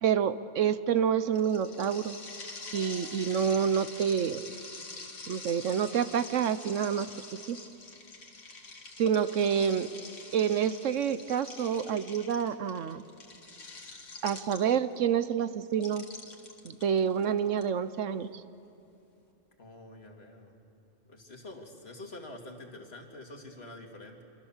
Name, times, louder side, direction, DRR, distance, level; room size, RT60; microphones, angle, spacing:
voice 1, 0.0-2.2 2.7-4.4 5.3-7.1 7.5-7.6 9.0-9.9 10.3-13.0 14.2-16.0 16.6-18.4, right 8 dB, 75° right, 13 dB, 1.1 m, -28 dB
sound 1, 1.3-15.0 15.7-17.6, left 3 dB, 70° left, 2.4 m, -45 dB
voice 2, 19.6-20.6 21.1-24.2, left 2 dB, 50° left, 2 dB, 2.6 m, -46 dB
27.0 x 26.5 x 7.3 m, 2.7 s
omnidirectional pair, 1.3 m